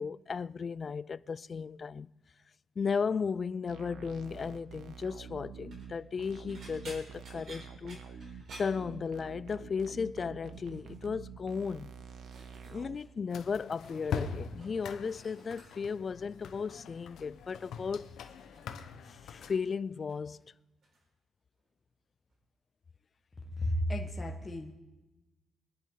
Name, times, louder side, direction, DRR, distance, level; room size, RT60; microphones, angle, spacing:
voice 1, 0.0-2.1 2.8-8.0 8.6-11.9 12.6-18.1 19.1-20.5, left 5 dB, 40° left, 0.3 m, -35 dB
sound 1, 3.7-13.0, right 6 dB, 75° right, 1.2 m, -47 dB
sound 2, 5.5-5.9 6.5-9.5 9.8-10.1 10.5-11.0 11.7-13.1 13.4-14.2 14.5-16.0 16.9-17.2 17.6-19.7 19.9-20.5 20.8-21.0 22.3-22.4, right 2 dB, 55° right, 5.4 m, -55 dB
sound 3, 13.3-19.6, left 6 dB, 75° left, 1.1 m, -42 dB
voice 2, 23.5-24.7, left 1 dB, 20° left, 1.4 m, -33 dB
22.5 x 11.0 x 3.9 m
cardioid pair, 90°, 0 cm